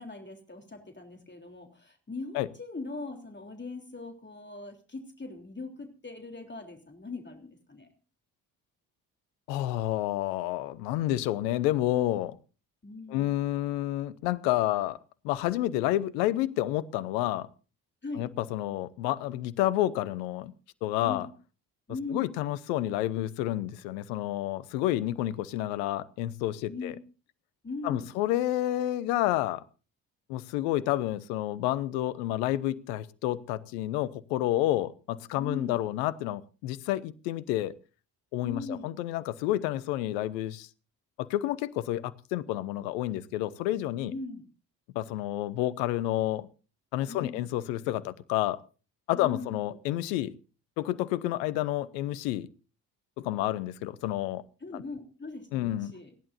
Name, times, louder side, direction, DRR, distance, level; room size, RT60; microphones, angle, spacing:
voice 1, 0.0-7.9 12.8-13.3 18.0-18.3 21.0-21.3 21.9-22.3 26.7-26.9 27.6-28.1 35.4-35.8 38.4-38.9 44.0-44.4 47.1-47.5 49.1-49.8 53.2-53.3 54.6-56.1, left 3 dB, 20° left, 3.5 m, -40 dB
voice 2, 9.5-12.4 13.1-15.0 15.2-17.5 18.2-20.5 20.8-21.3 22.1-26.9 27.8-29.6 30.3-37.7 38.3-40.7 41.2-44.1 44.9-46.5 46.9-48.6 49.1-50.3 50.8-52.5 53.2-54.4 54.7-54.8 55.5-55.9, left 14 dB, 80° left, 1.0 m, -29 dB
29.0 x 11.0 x 2.7 m
hypercardioid pair, 45°, 48 cm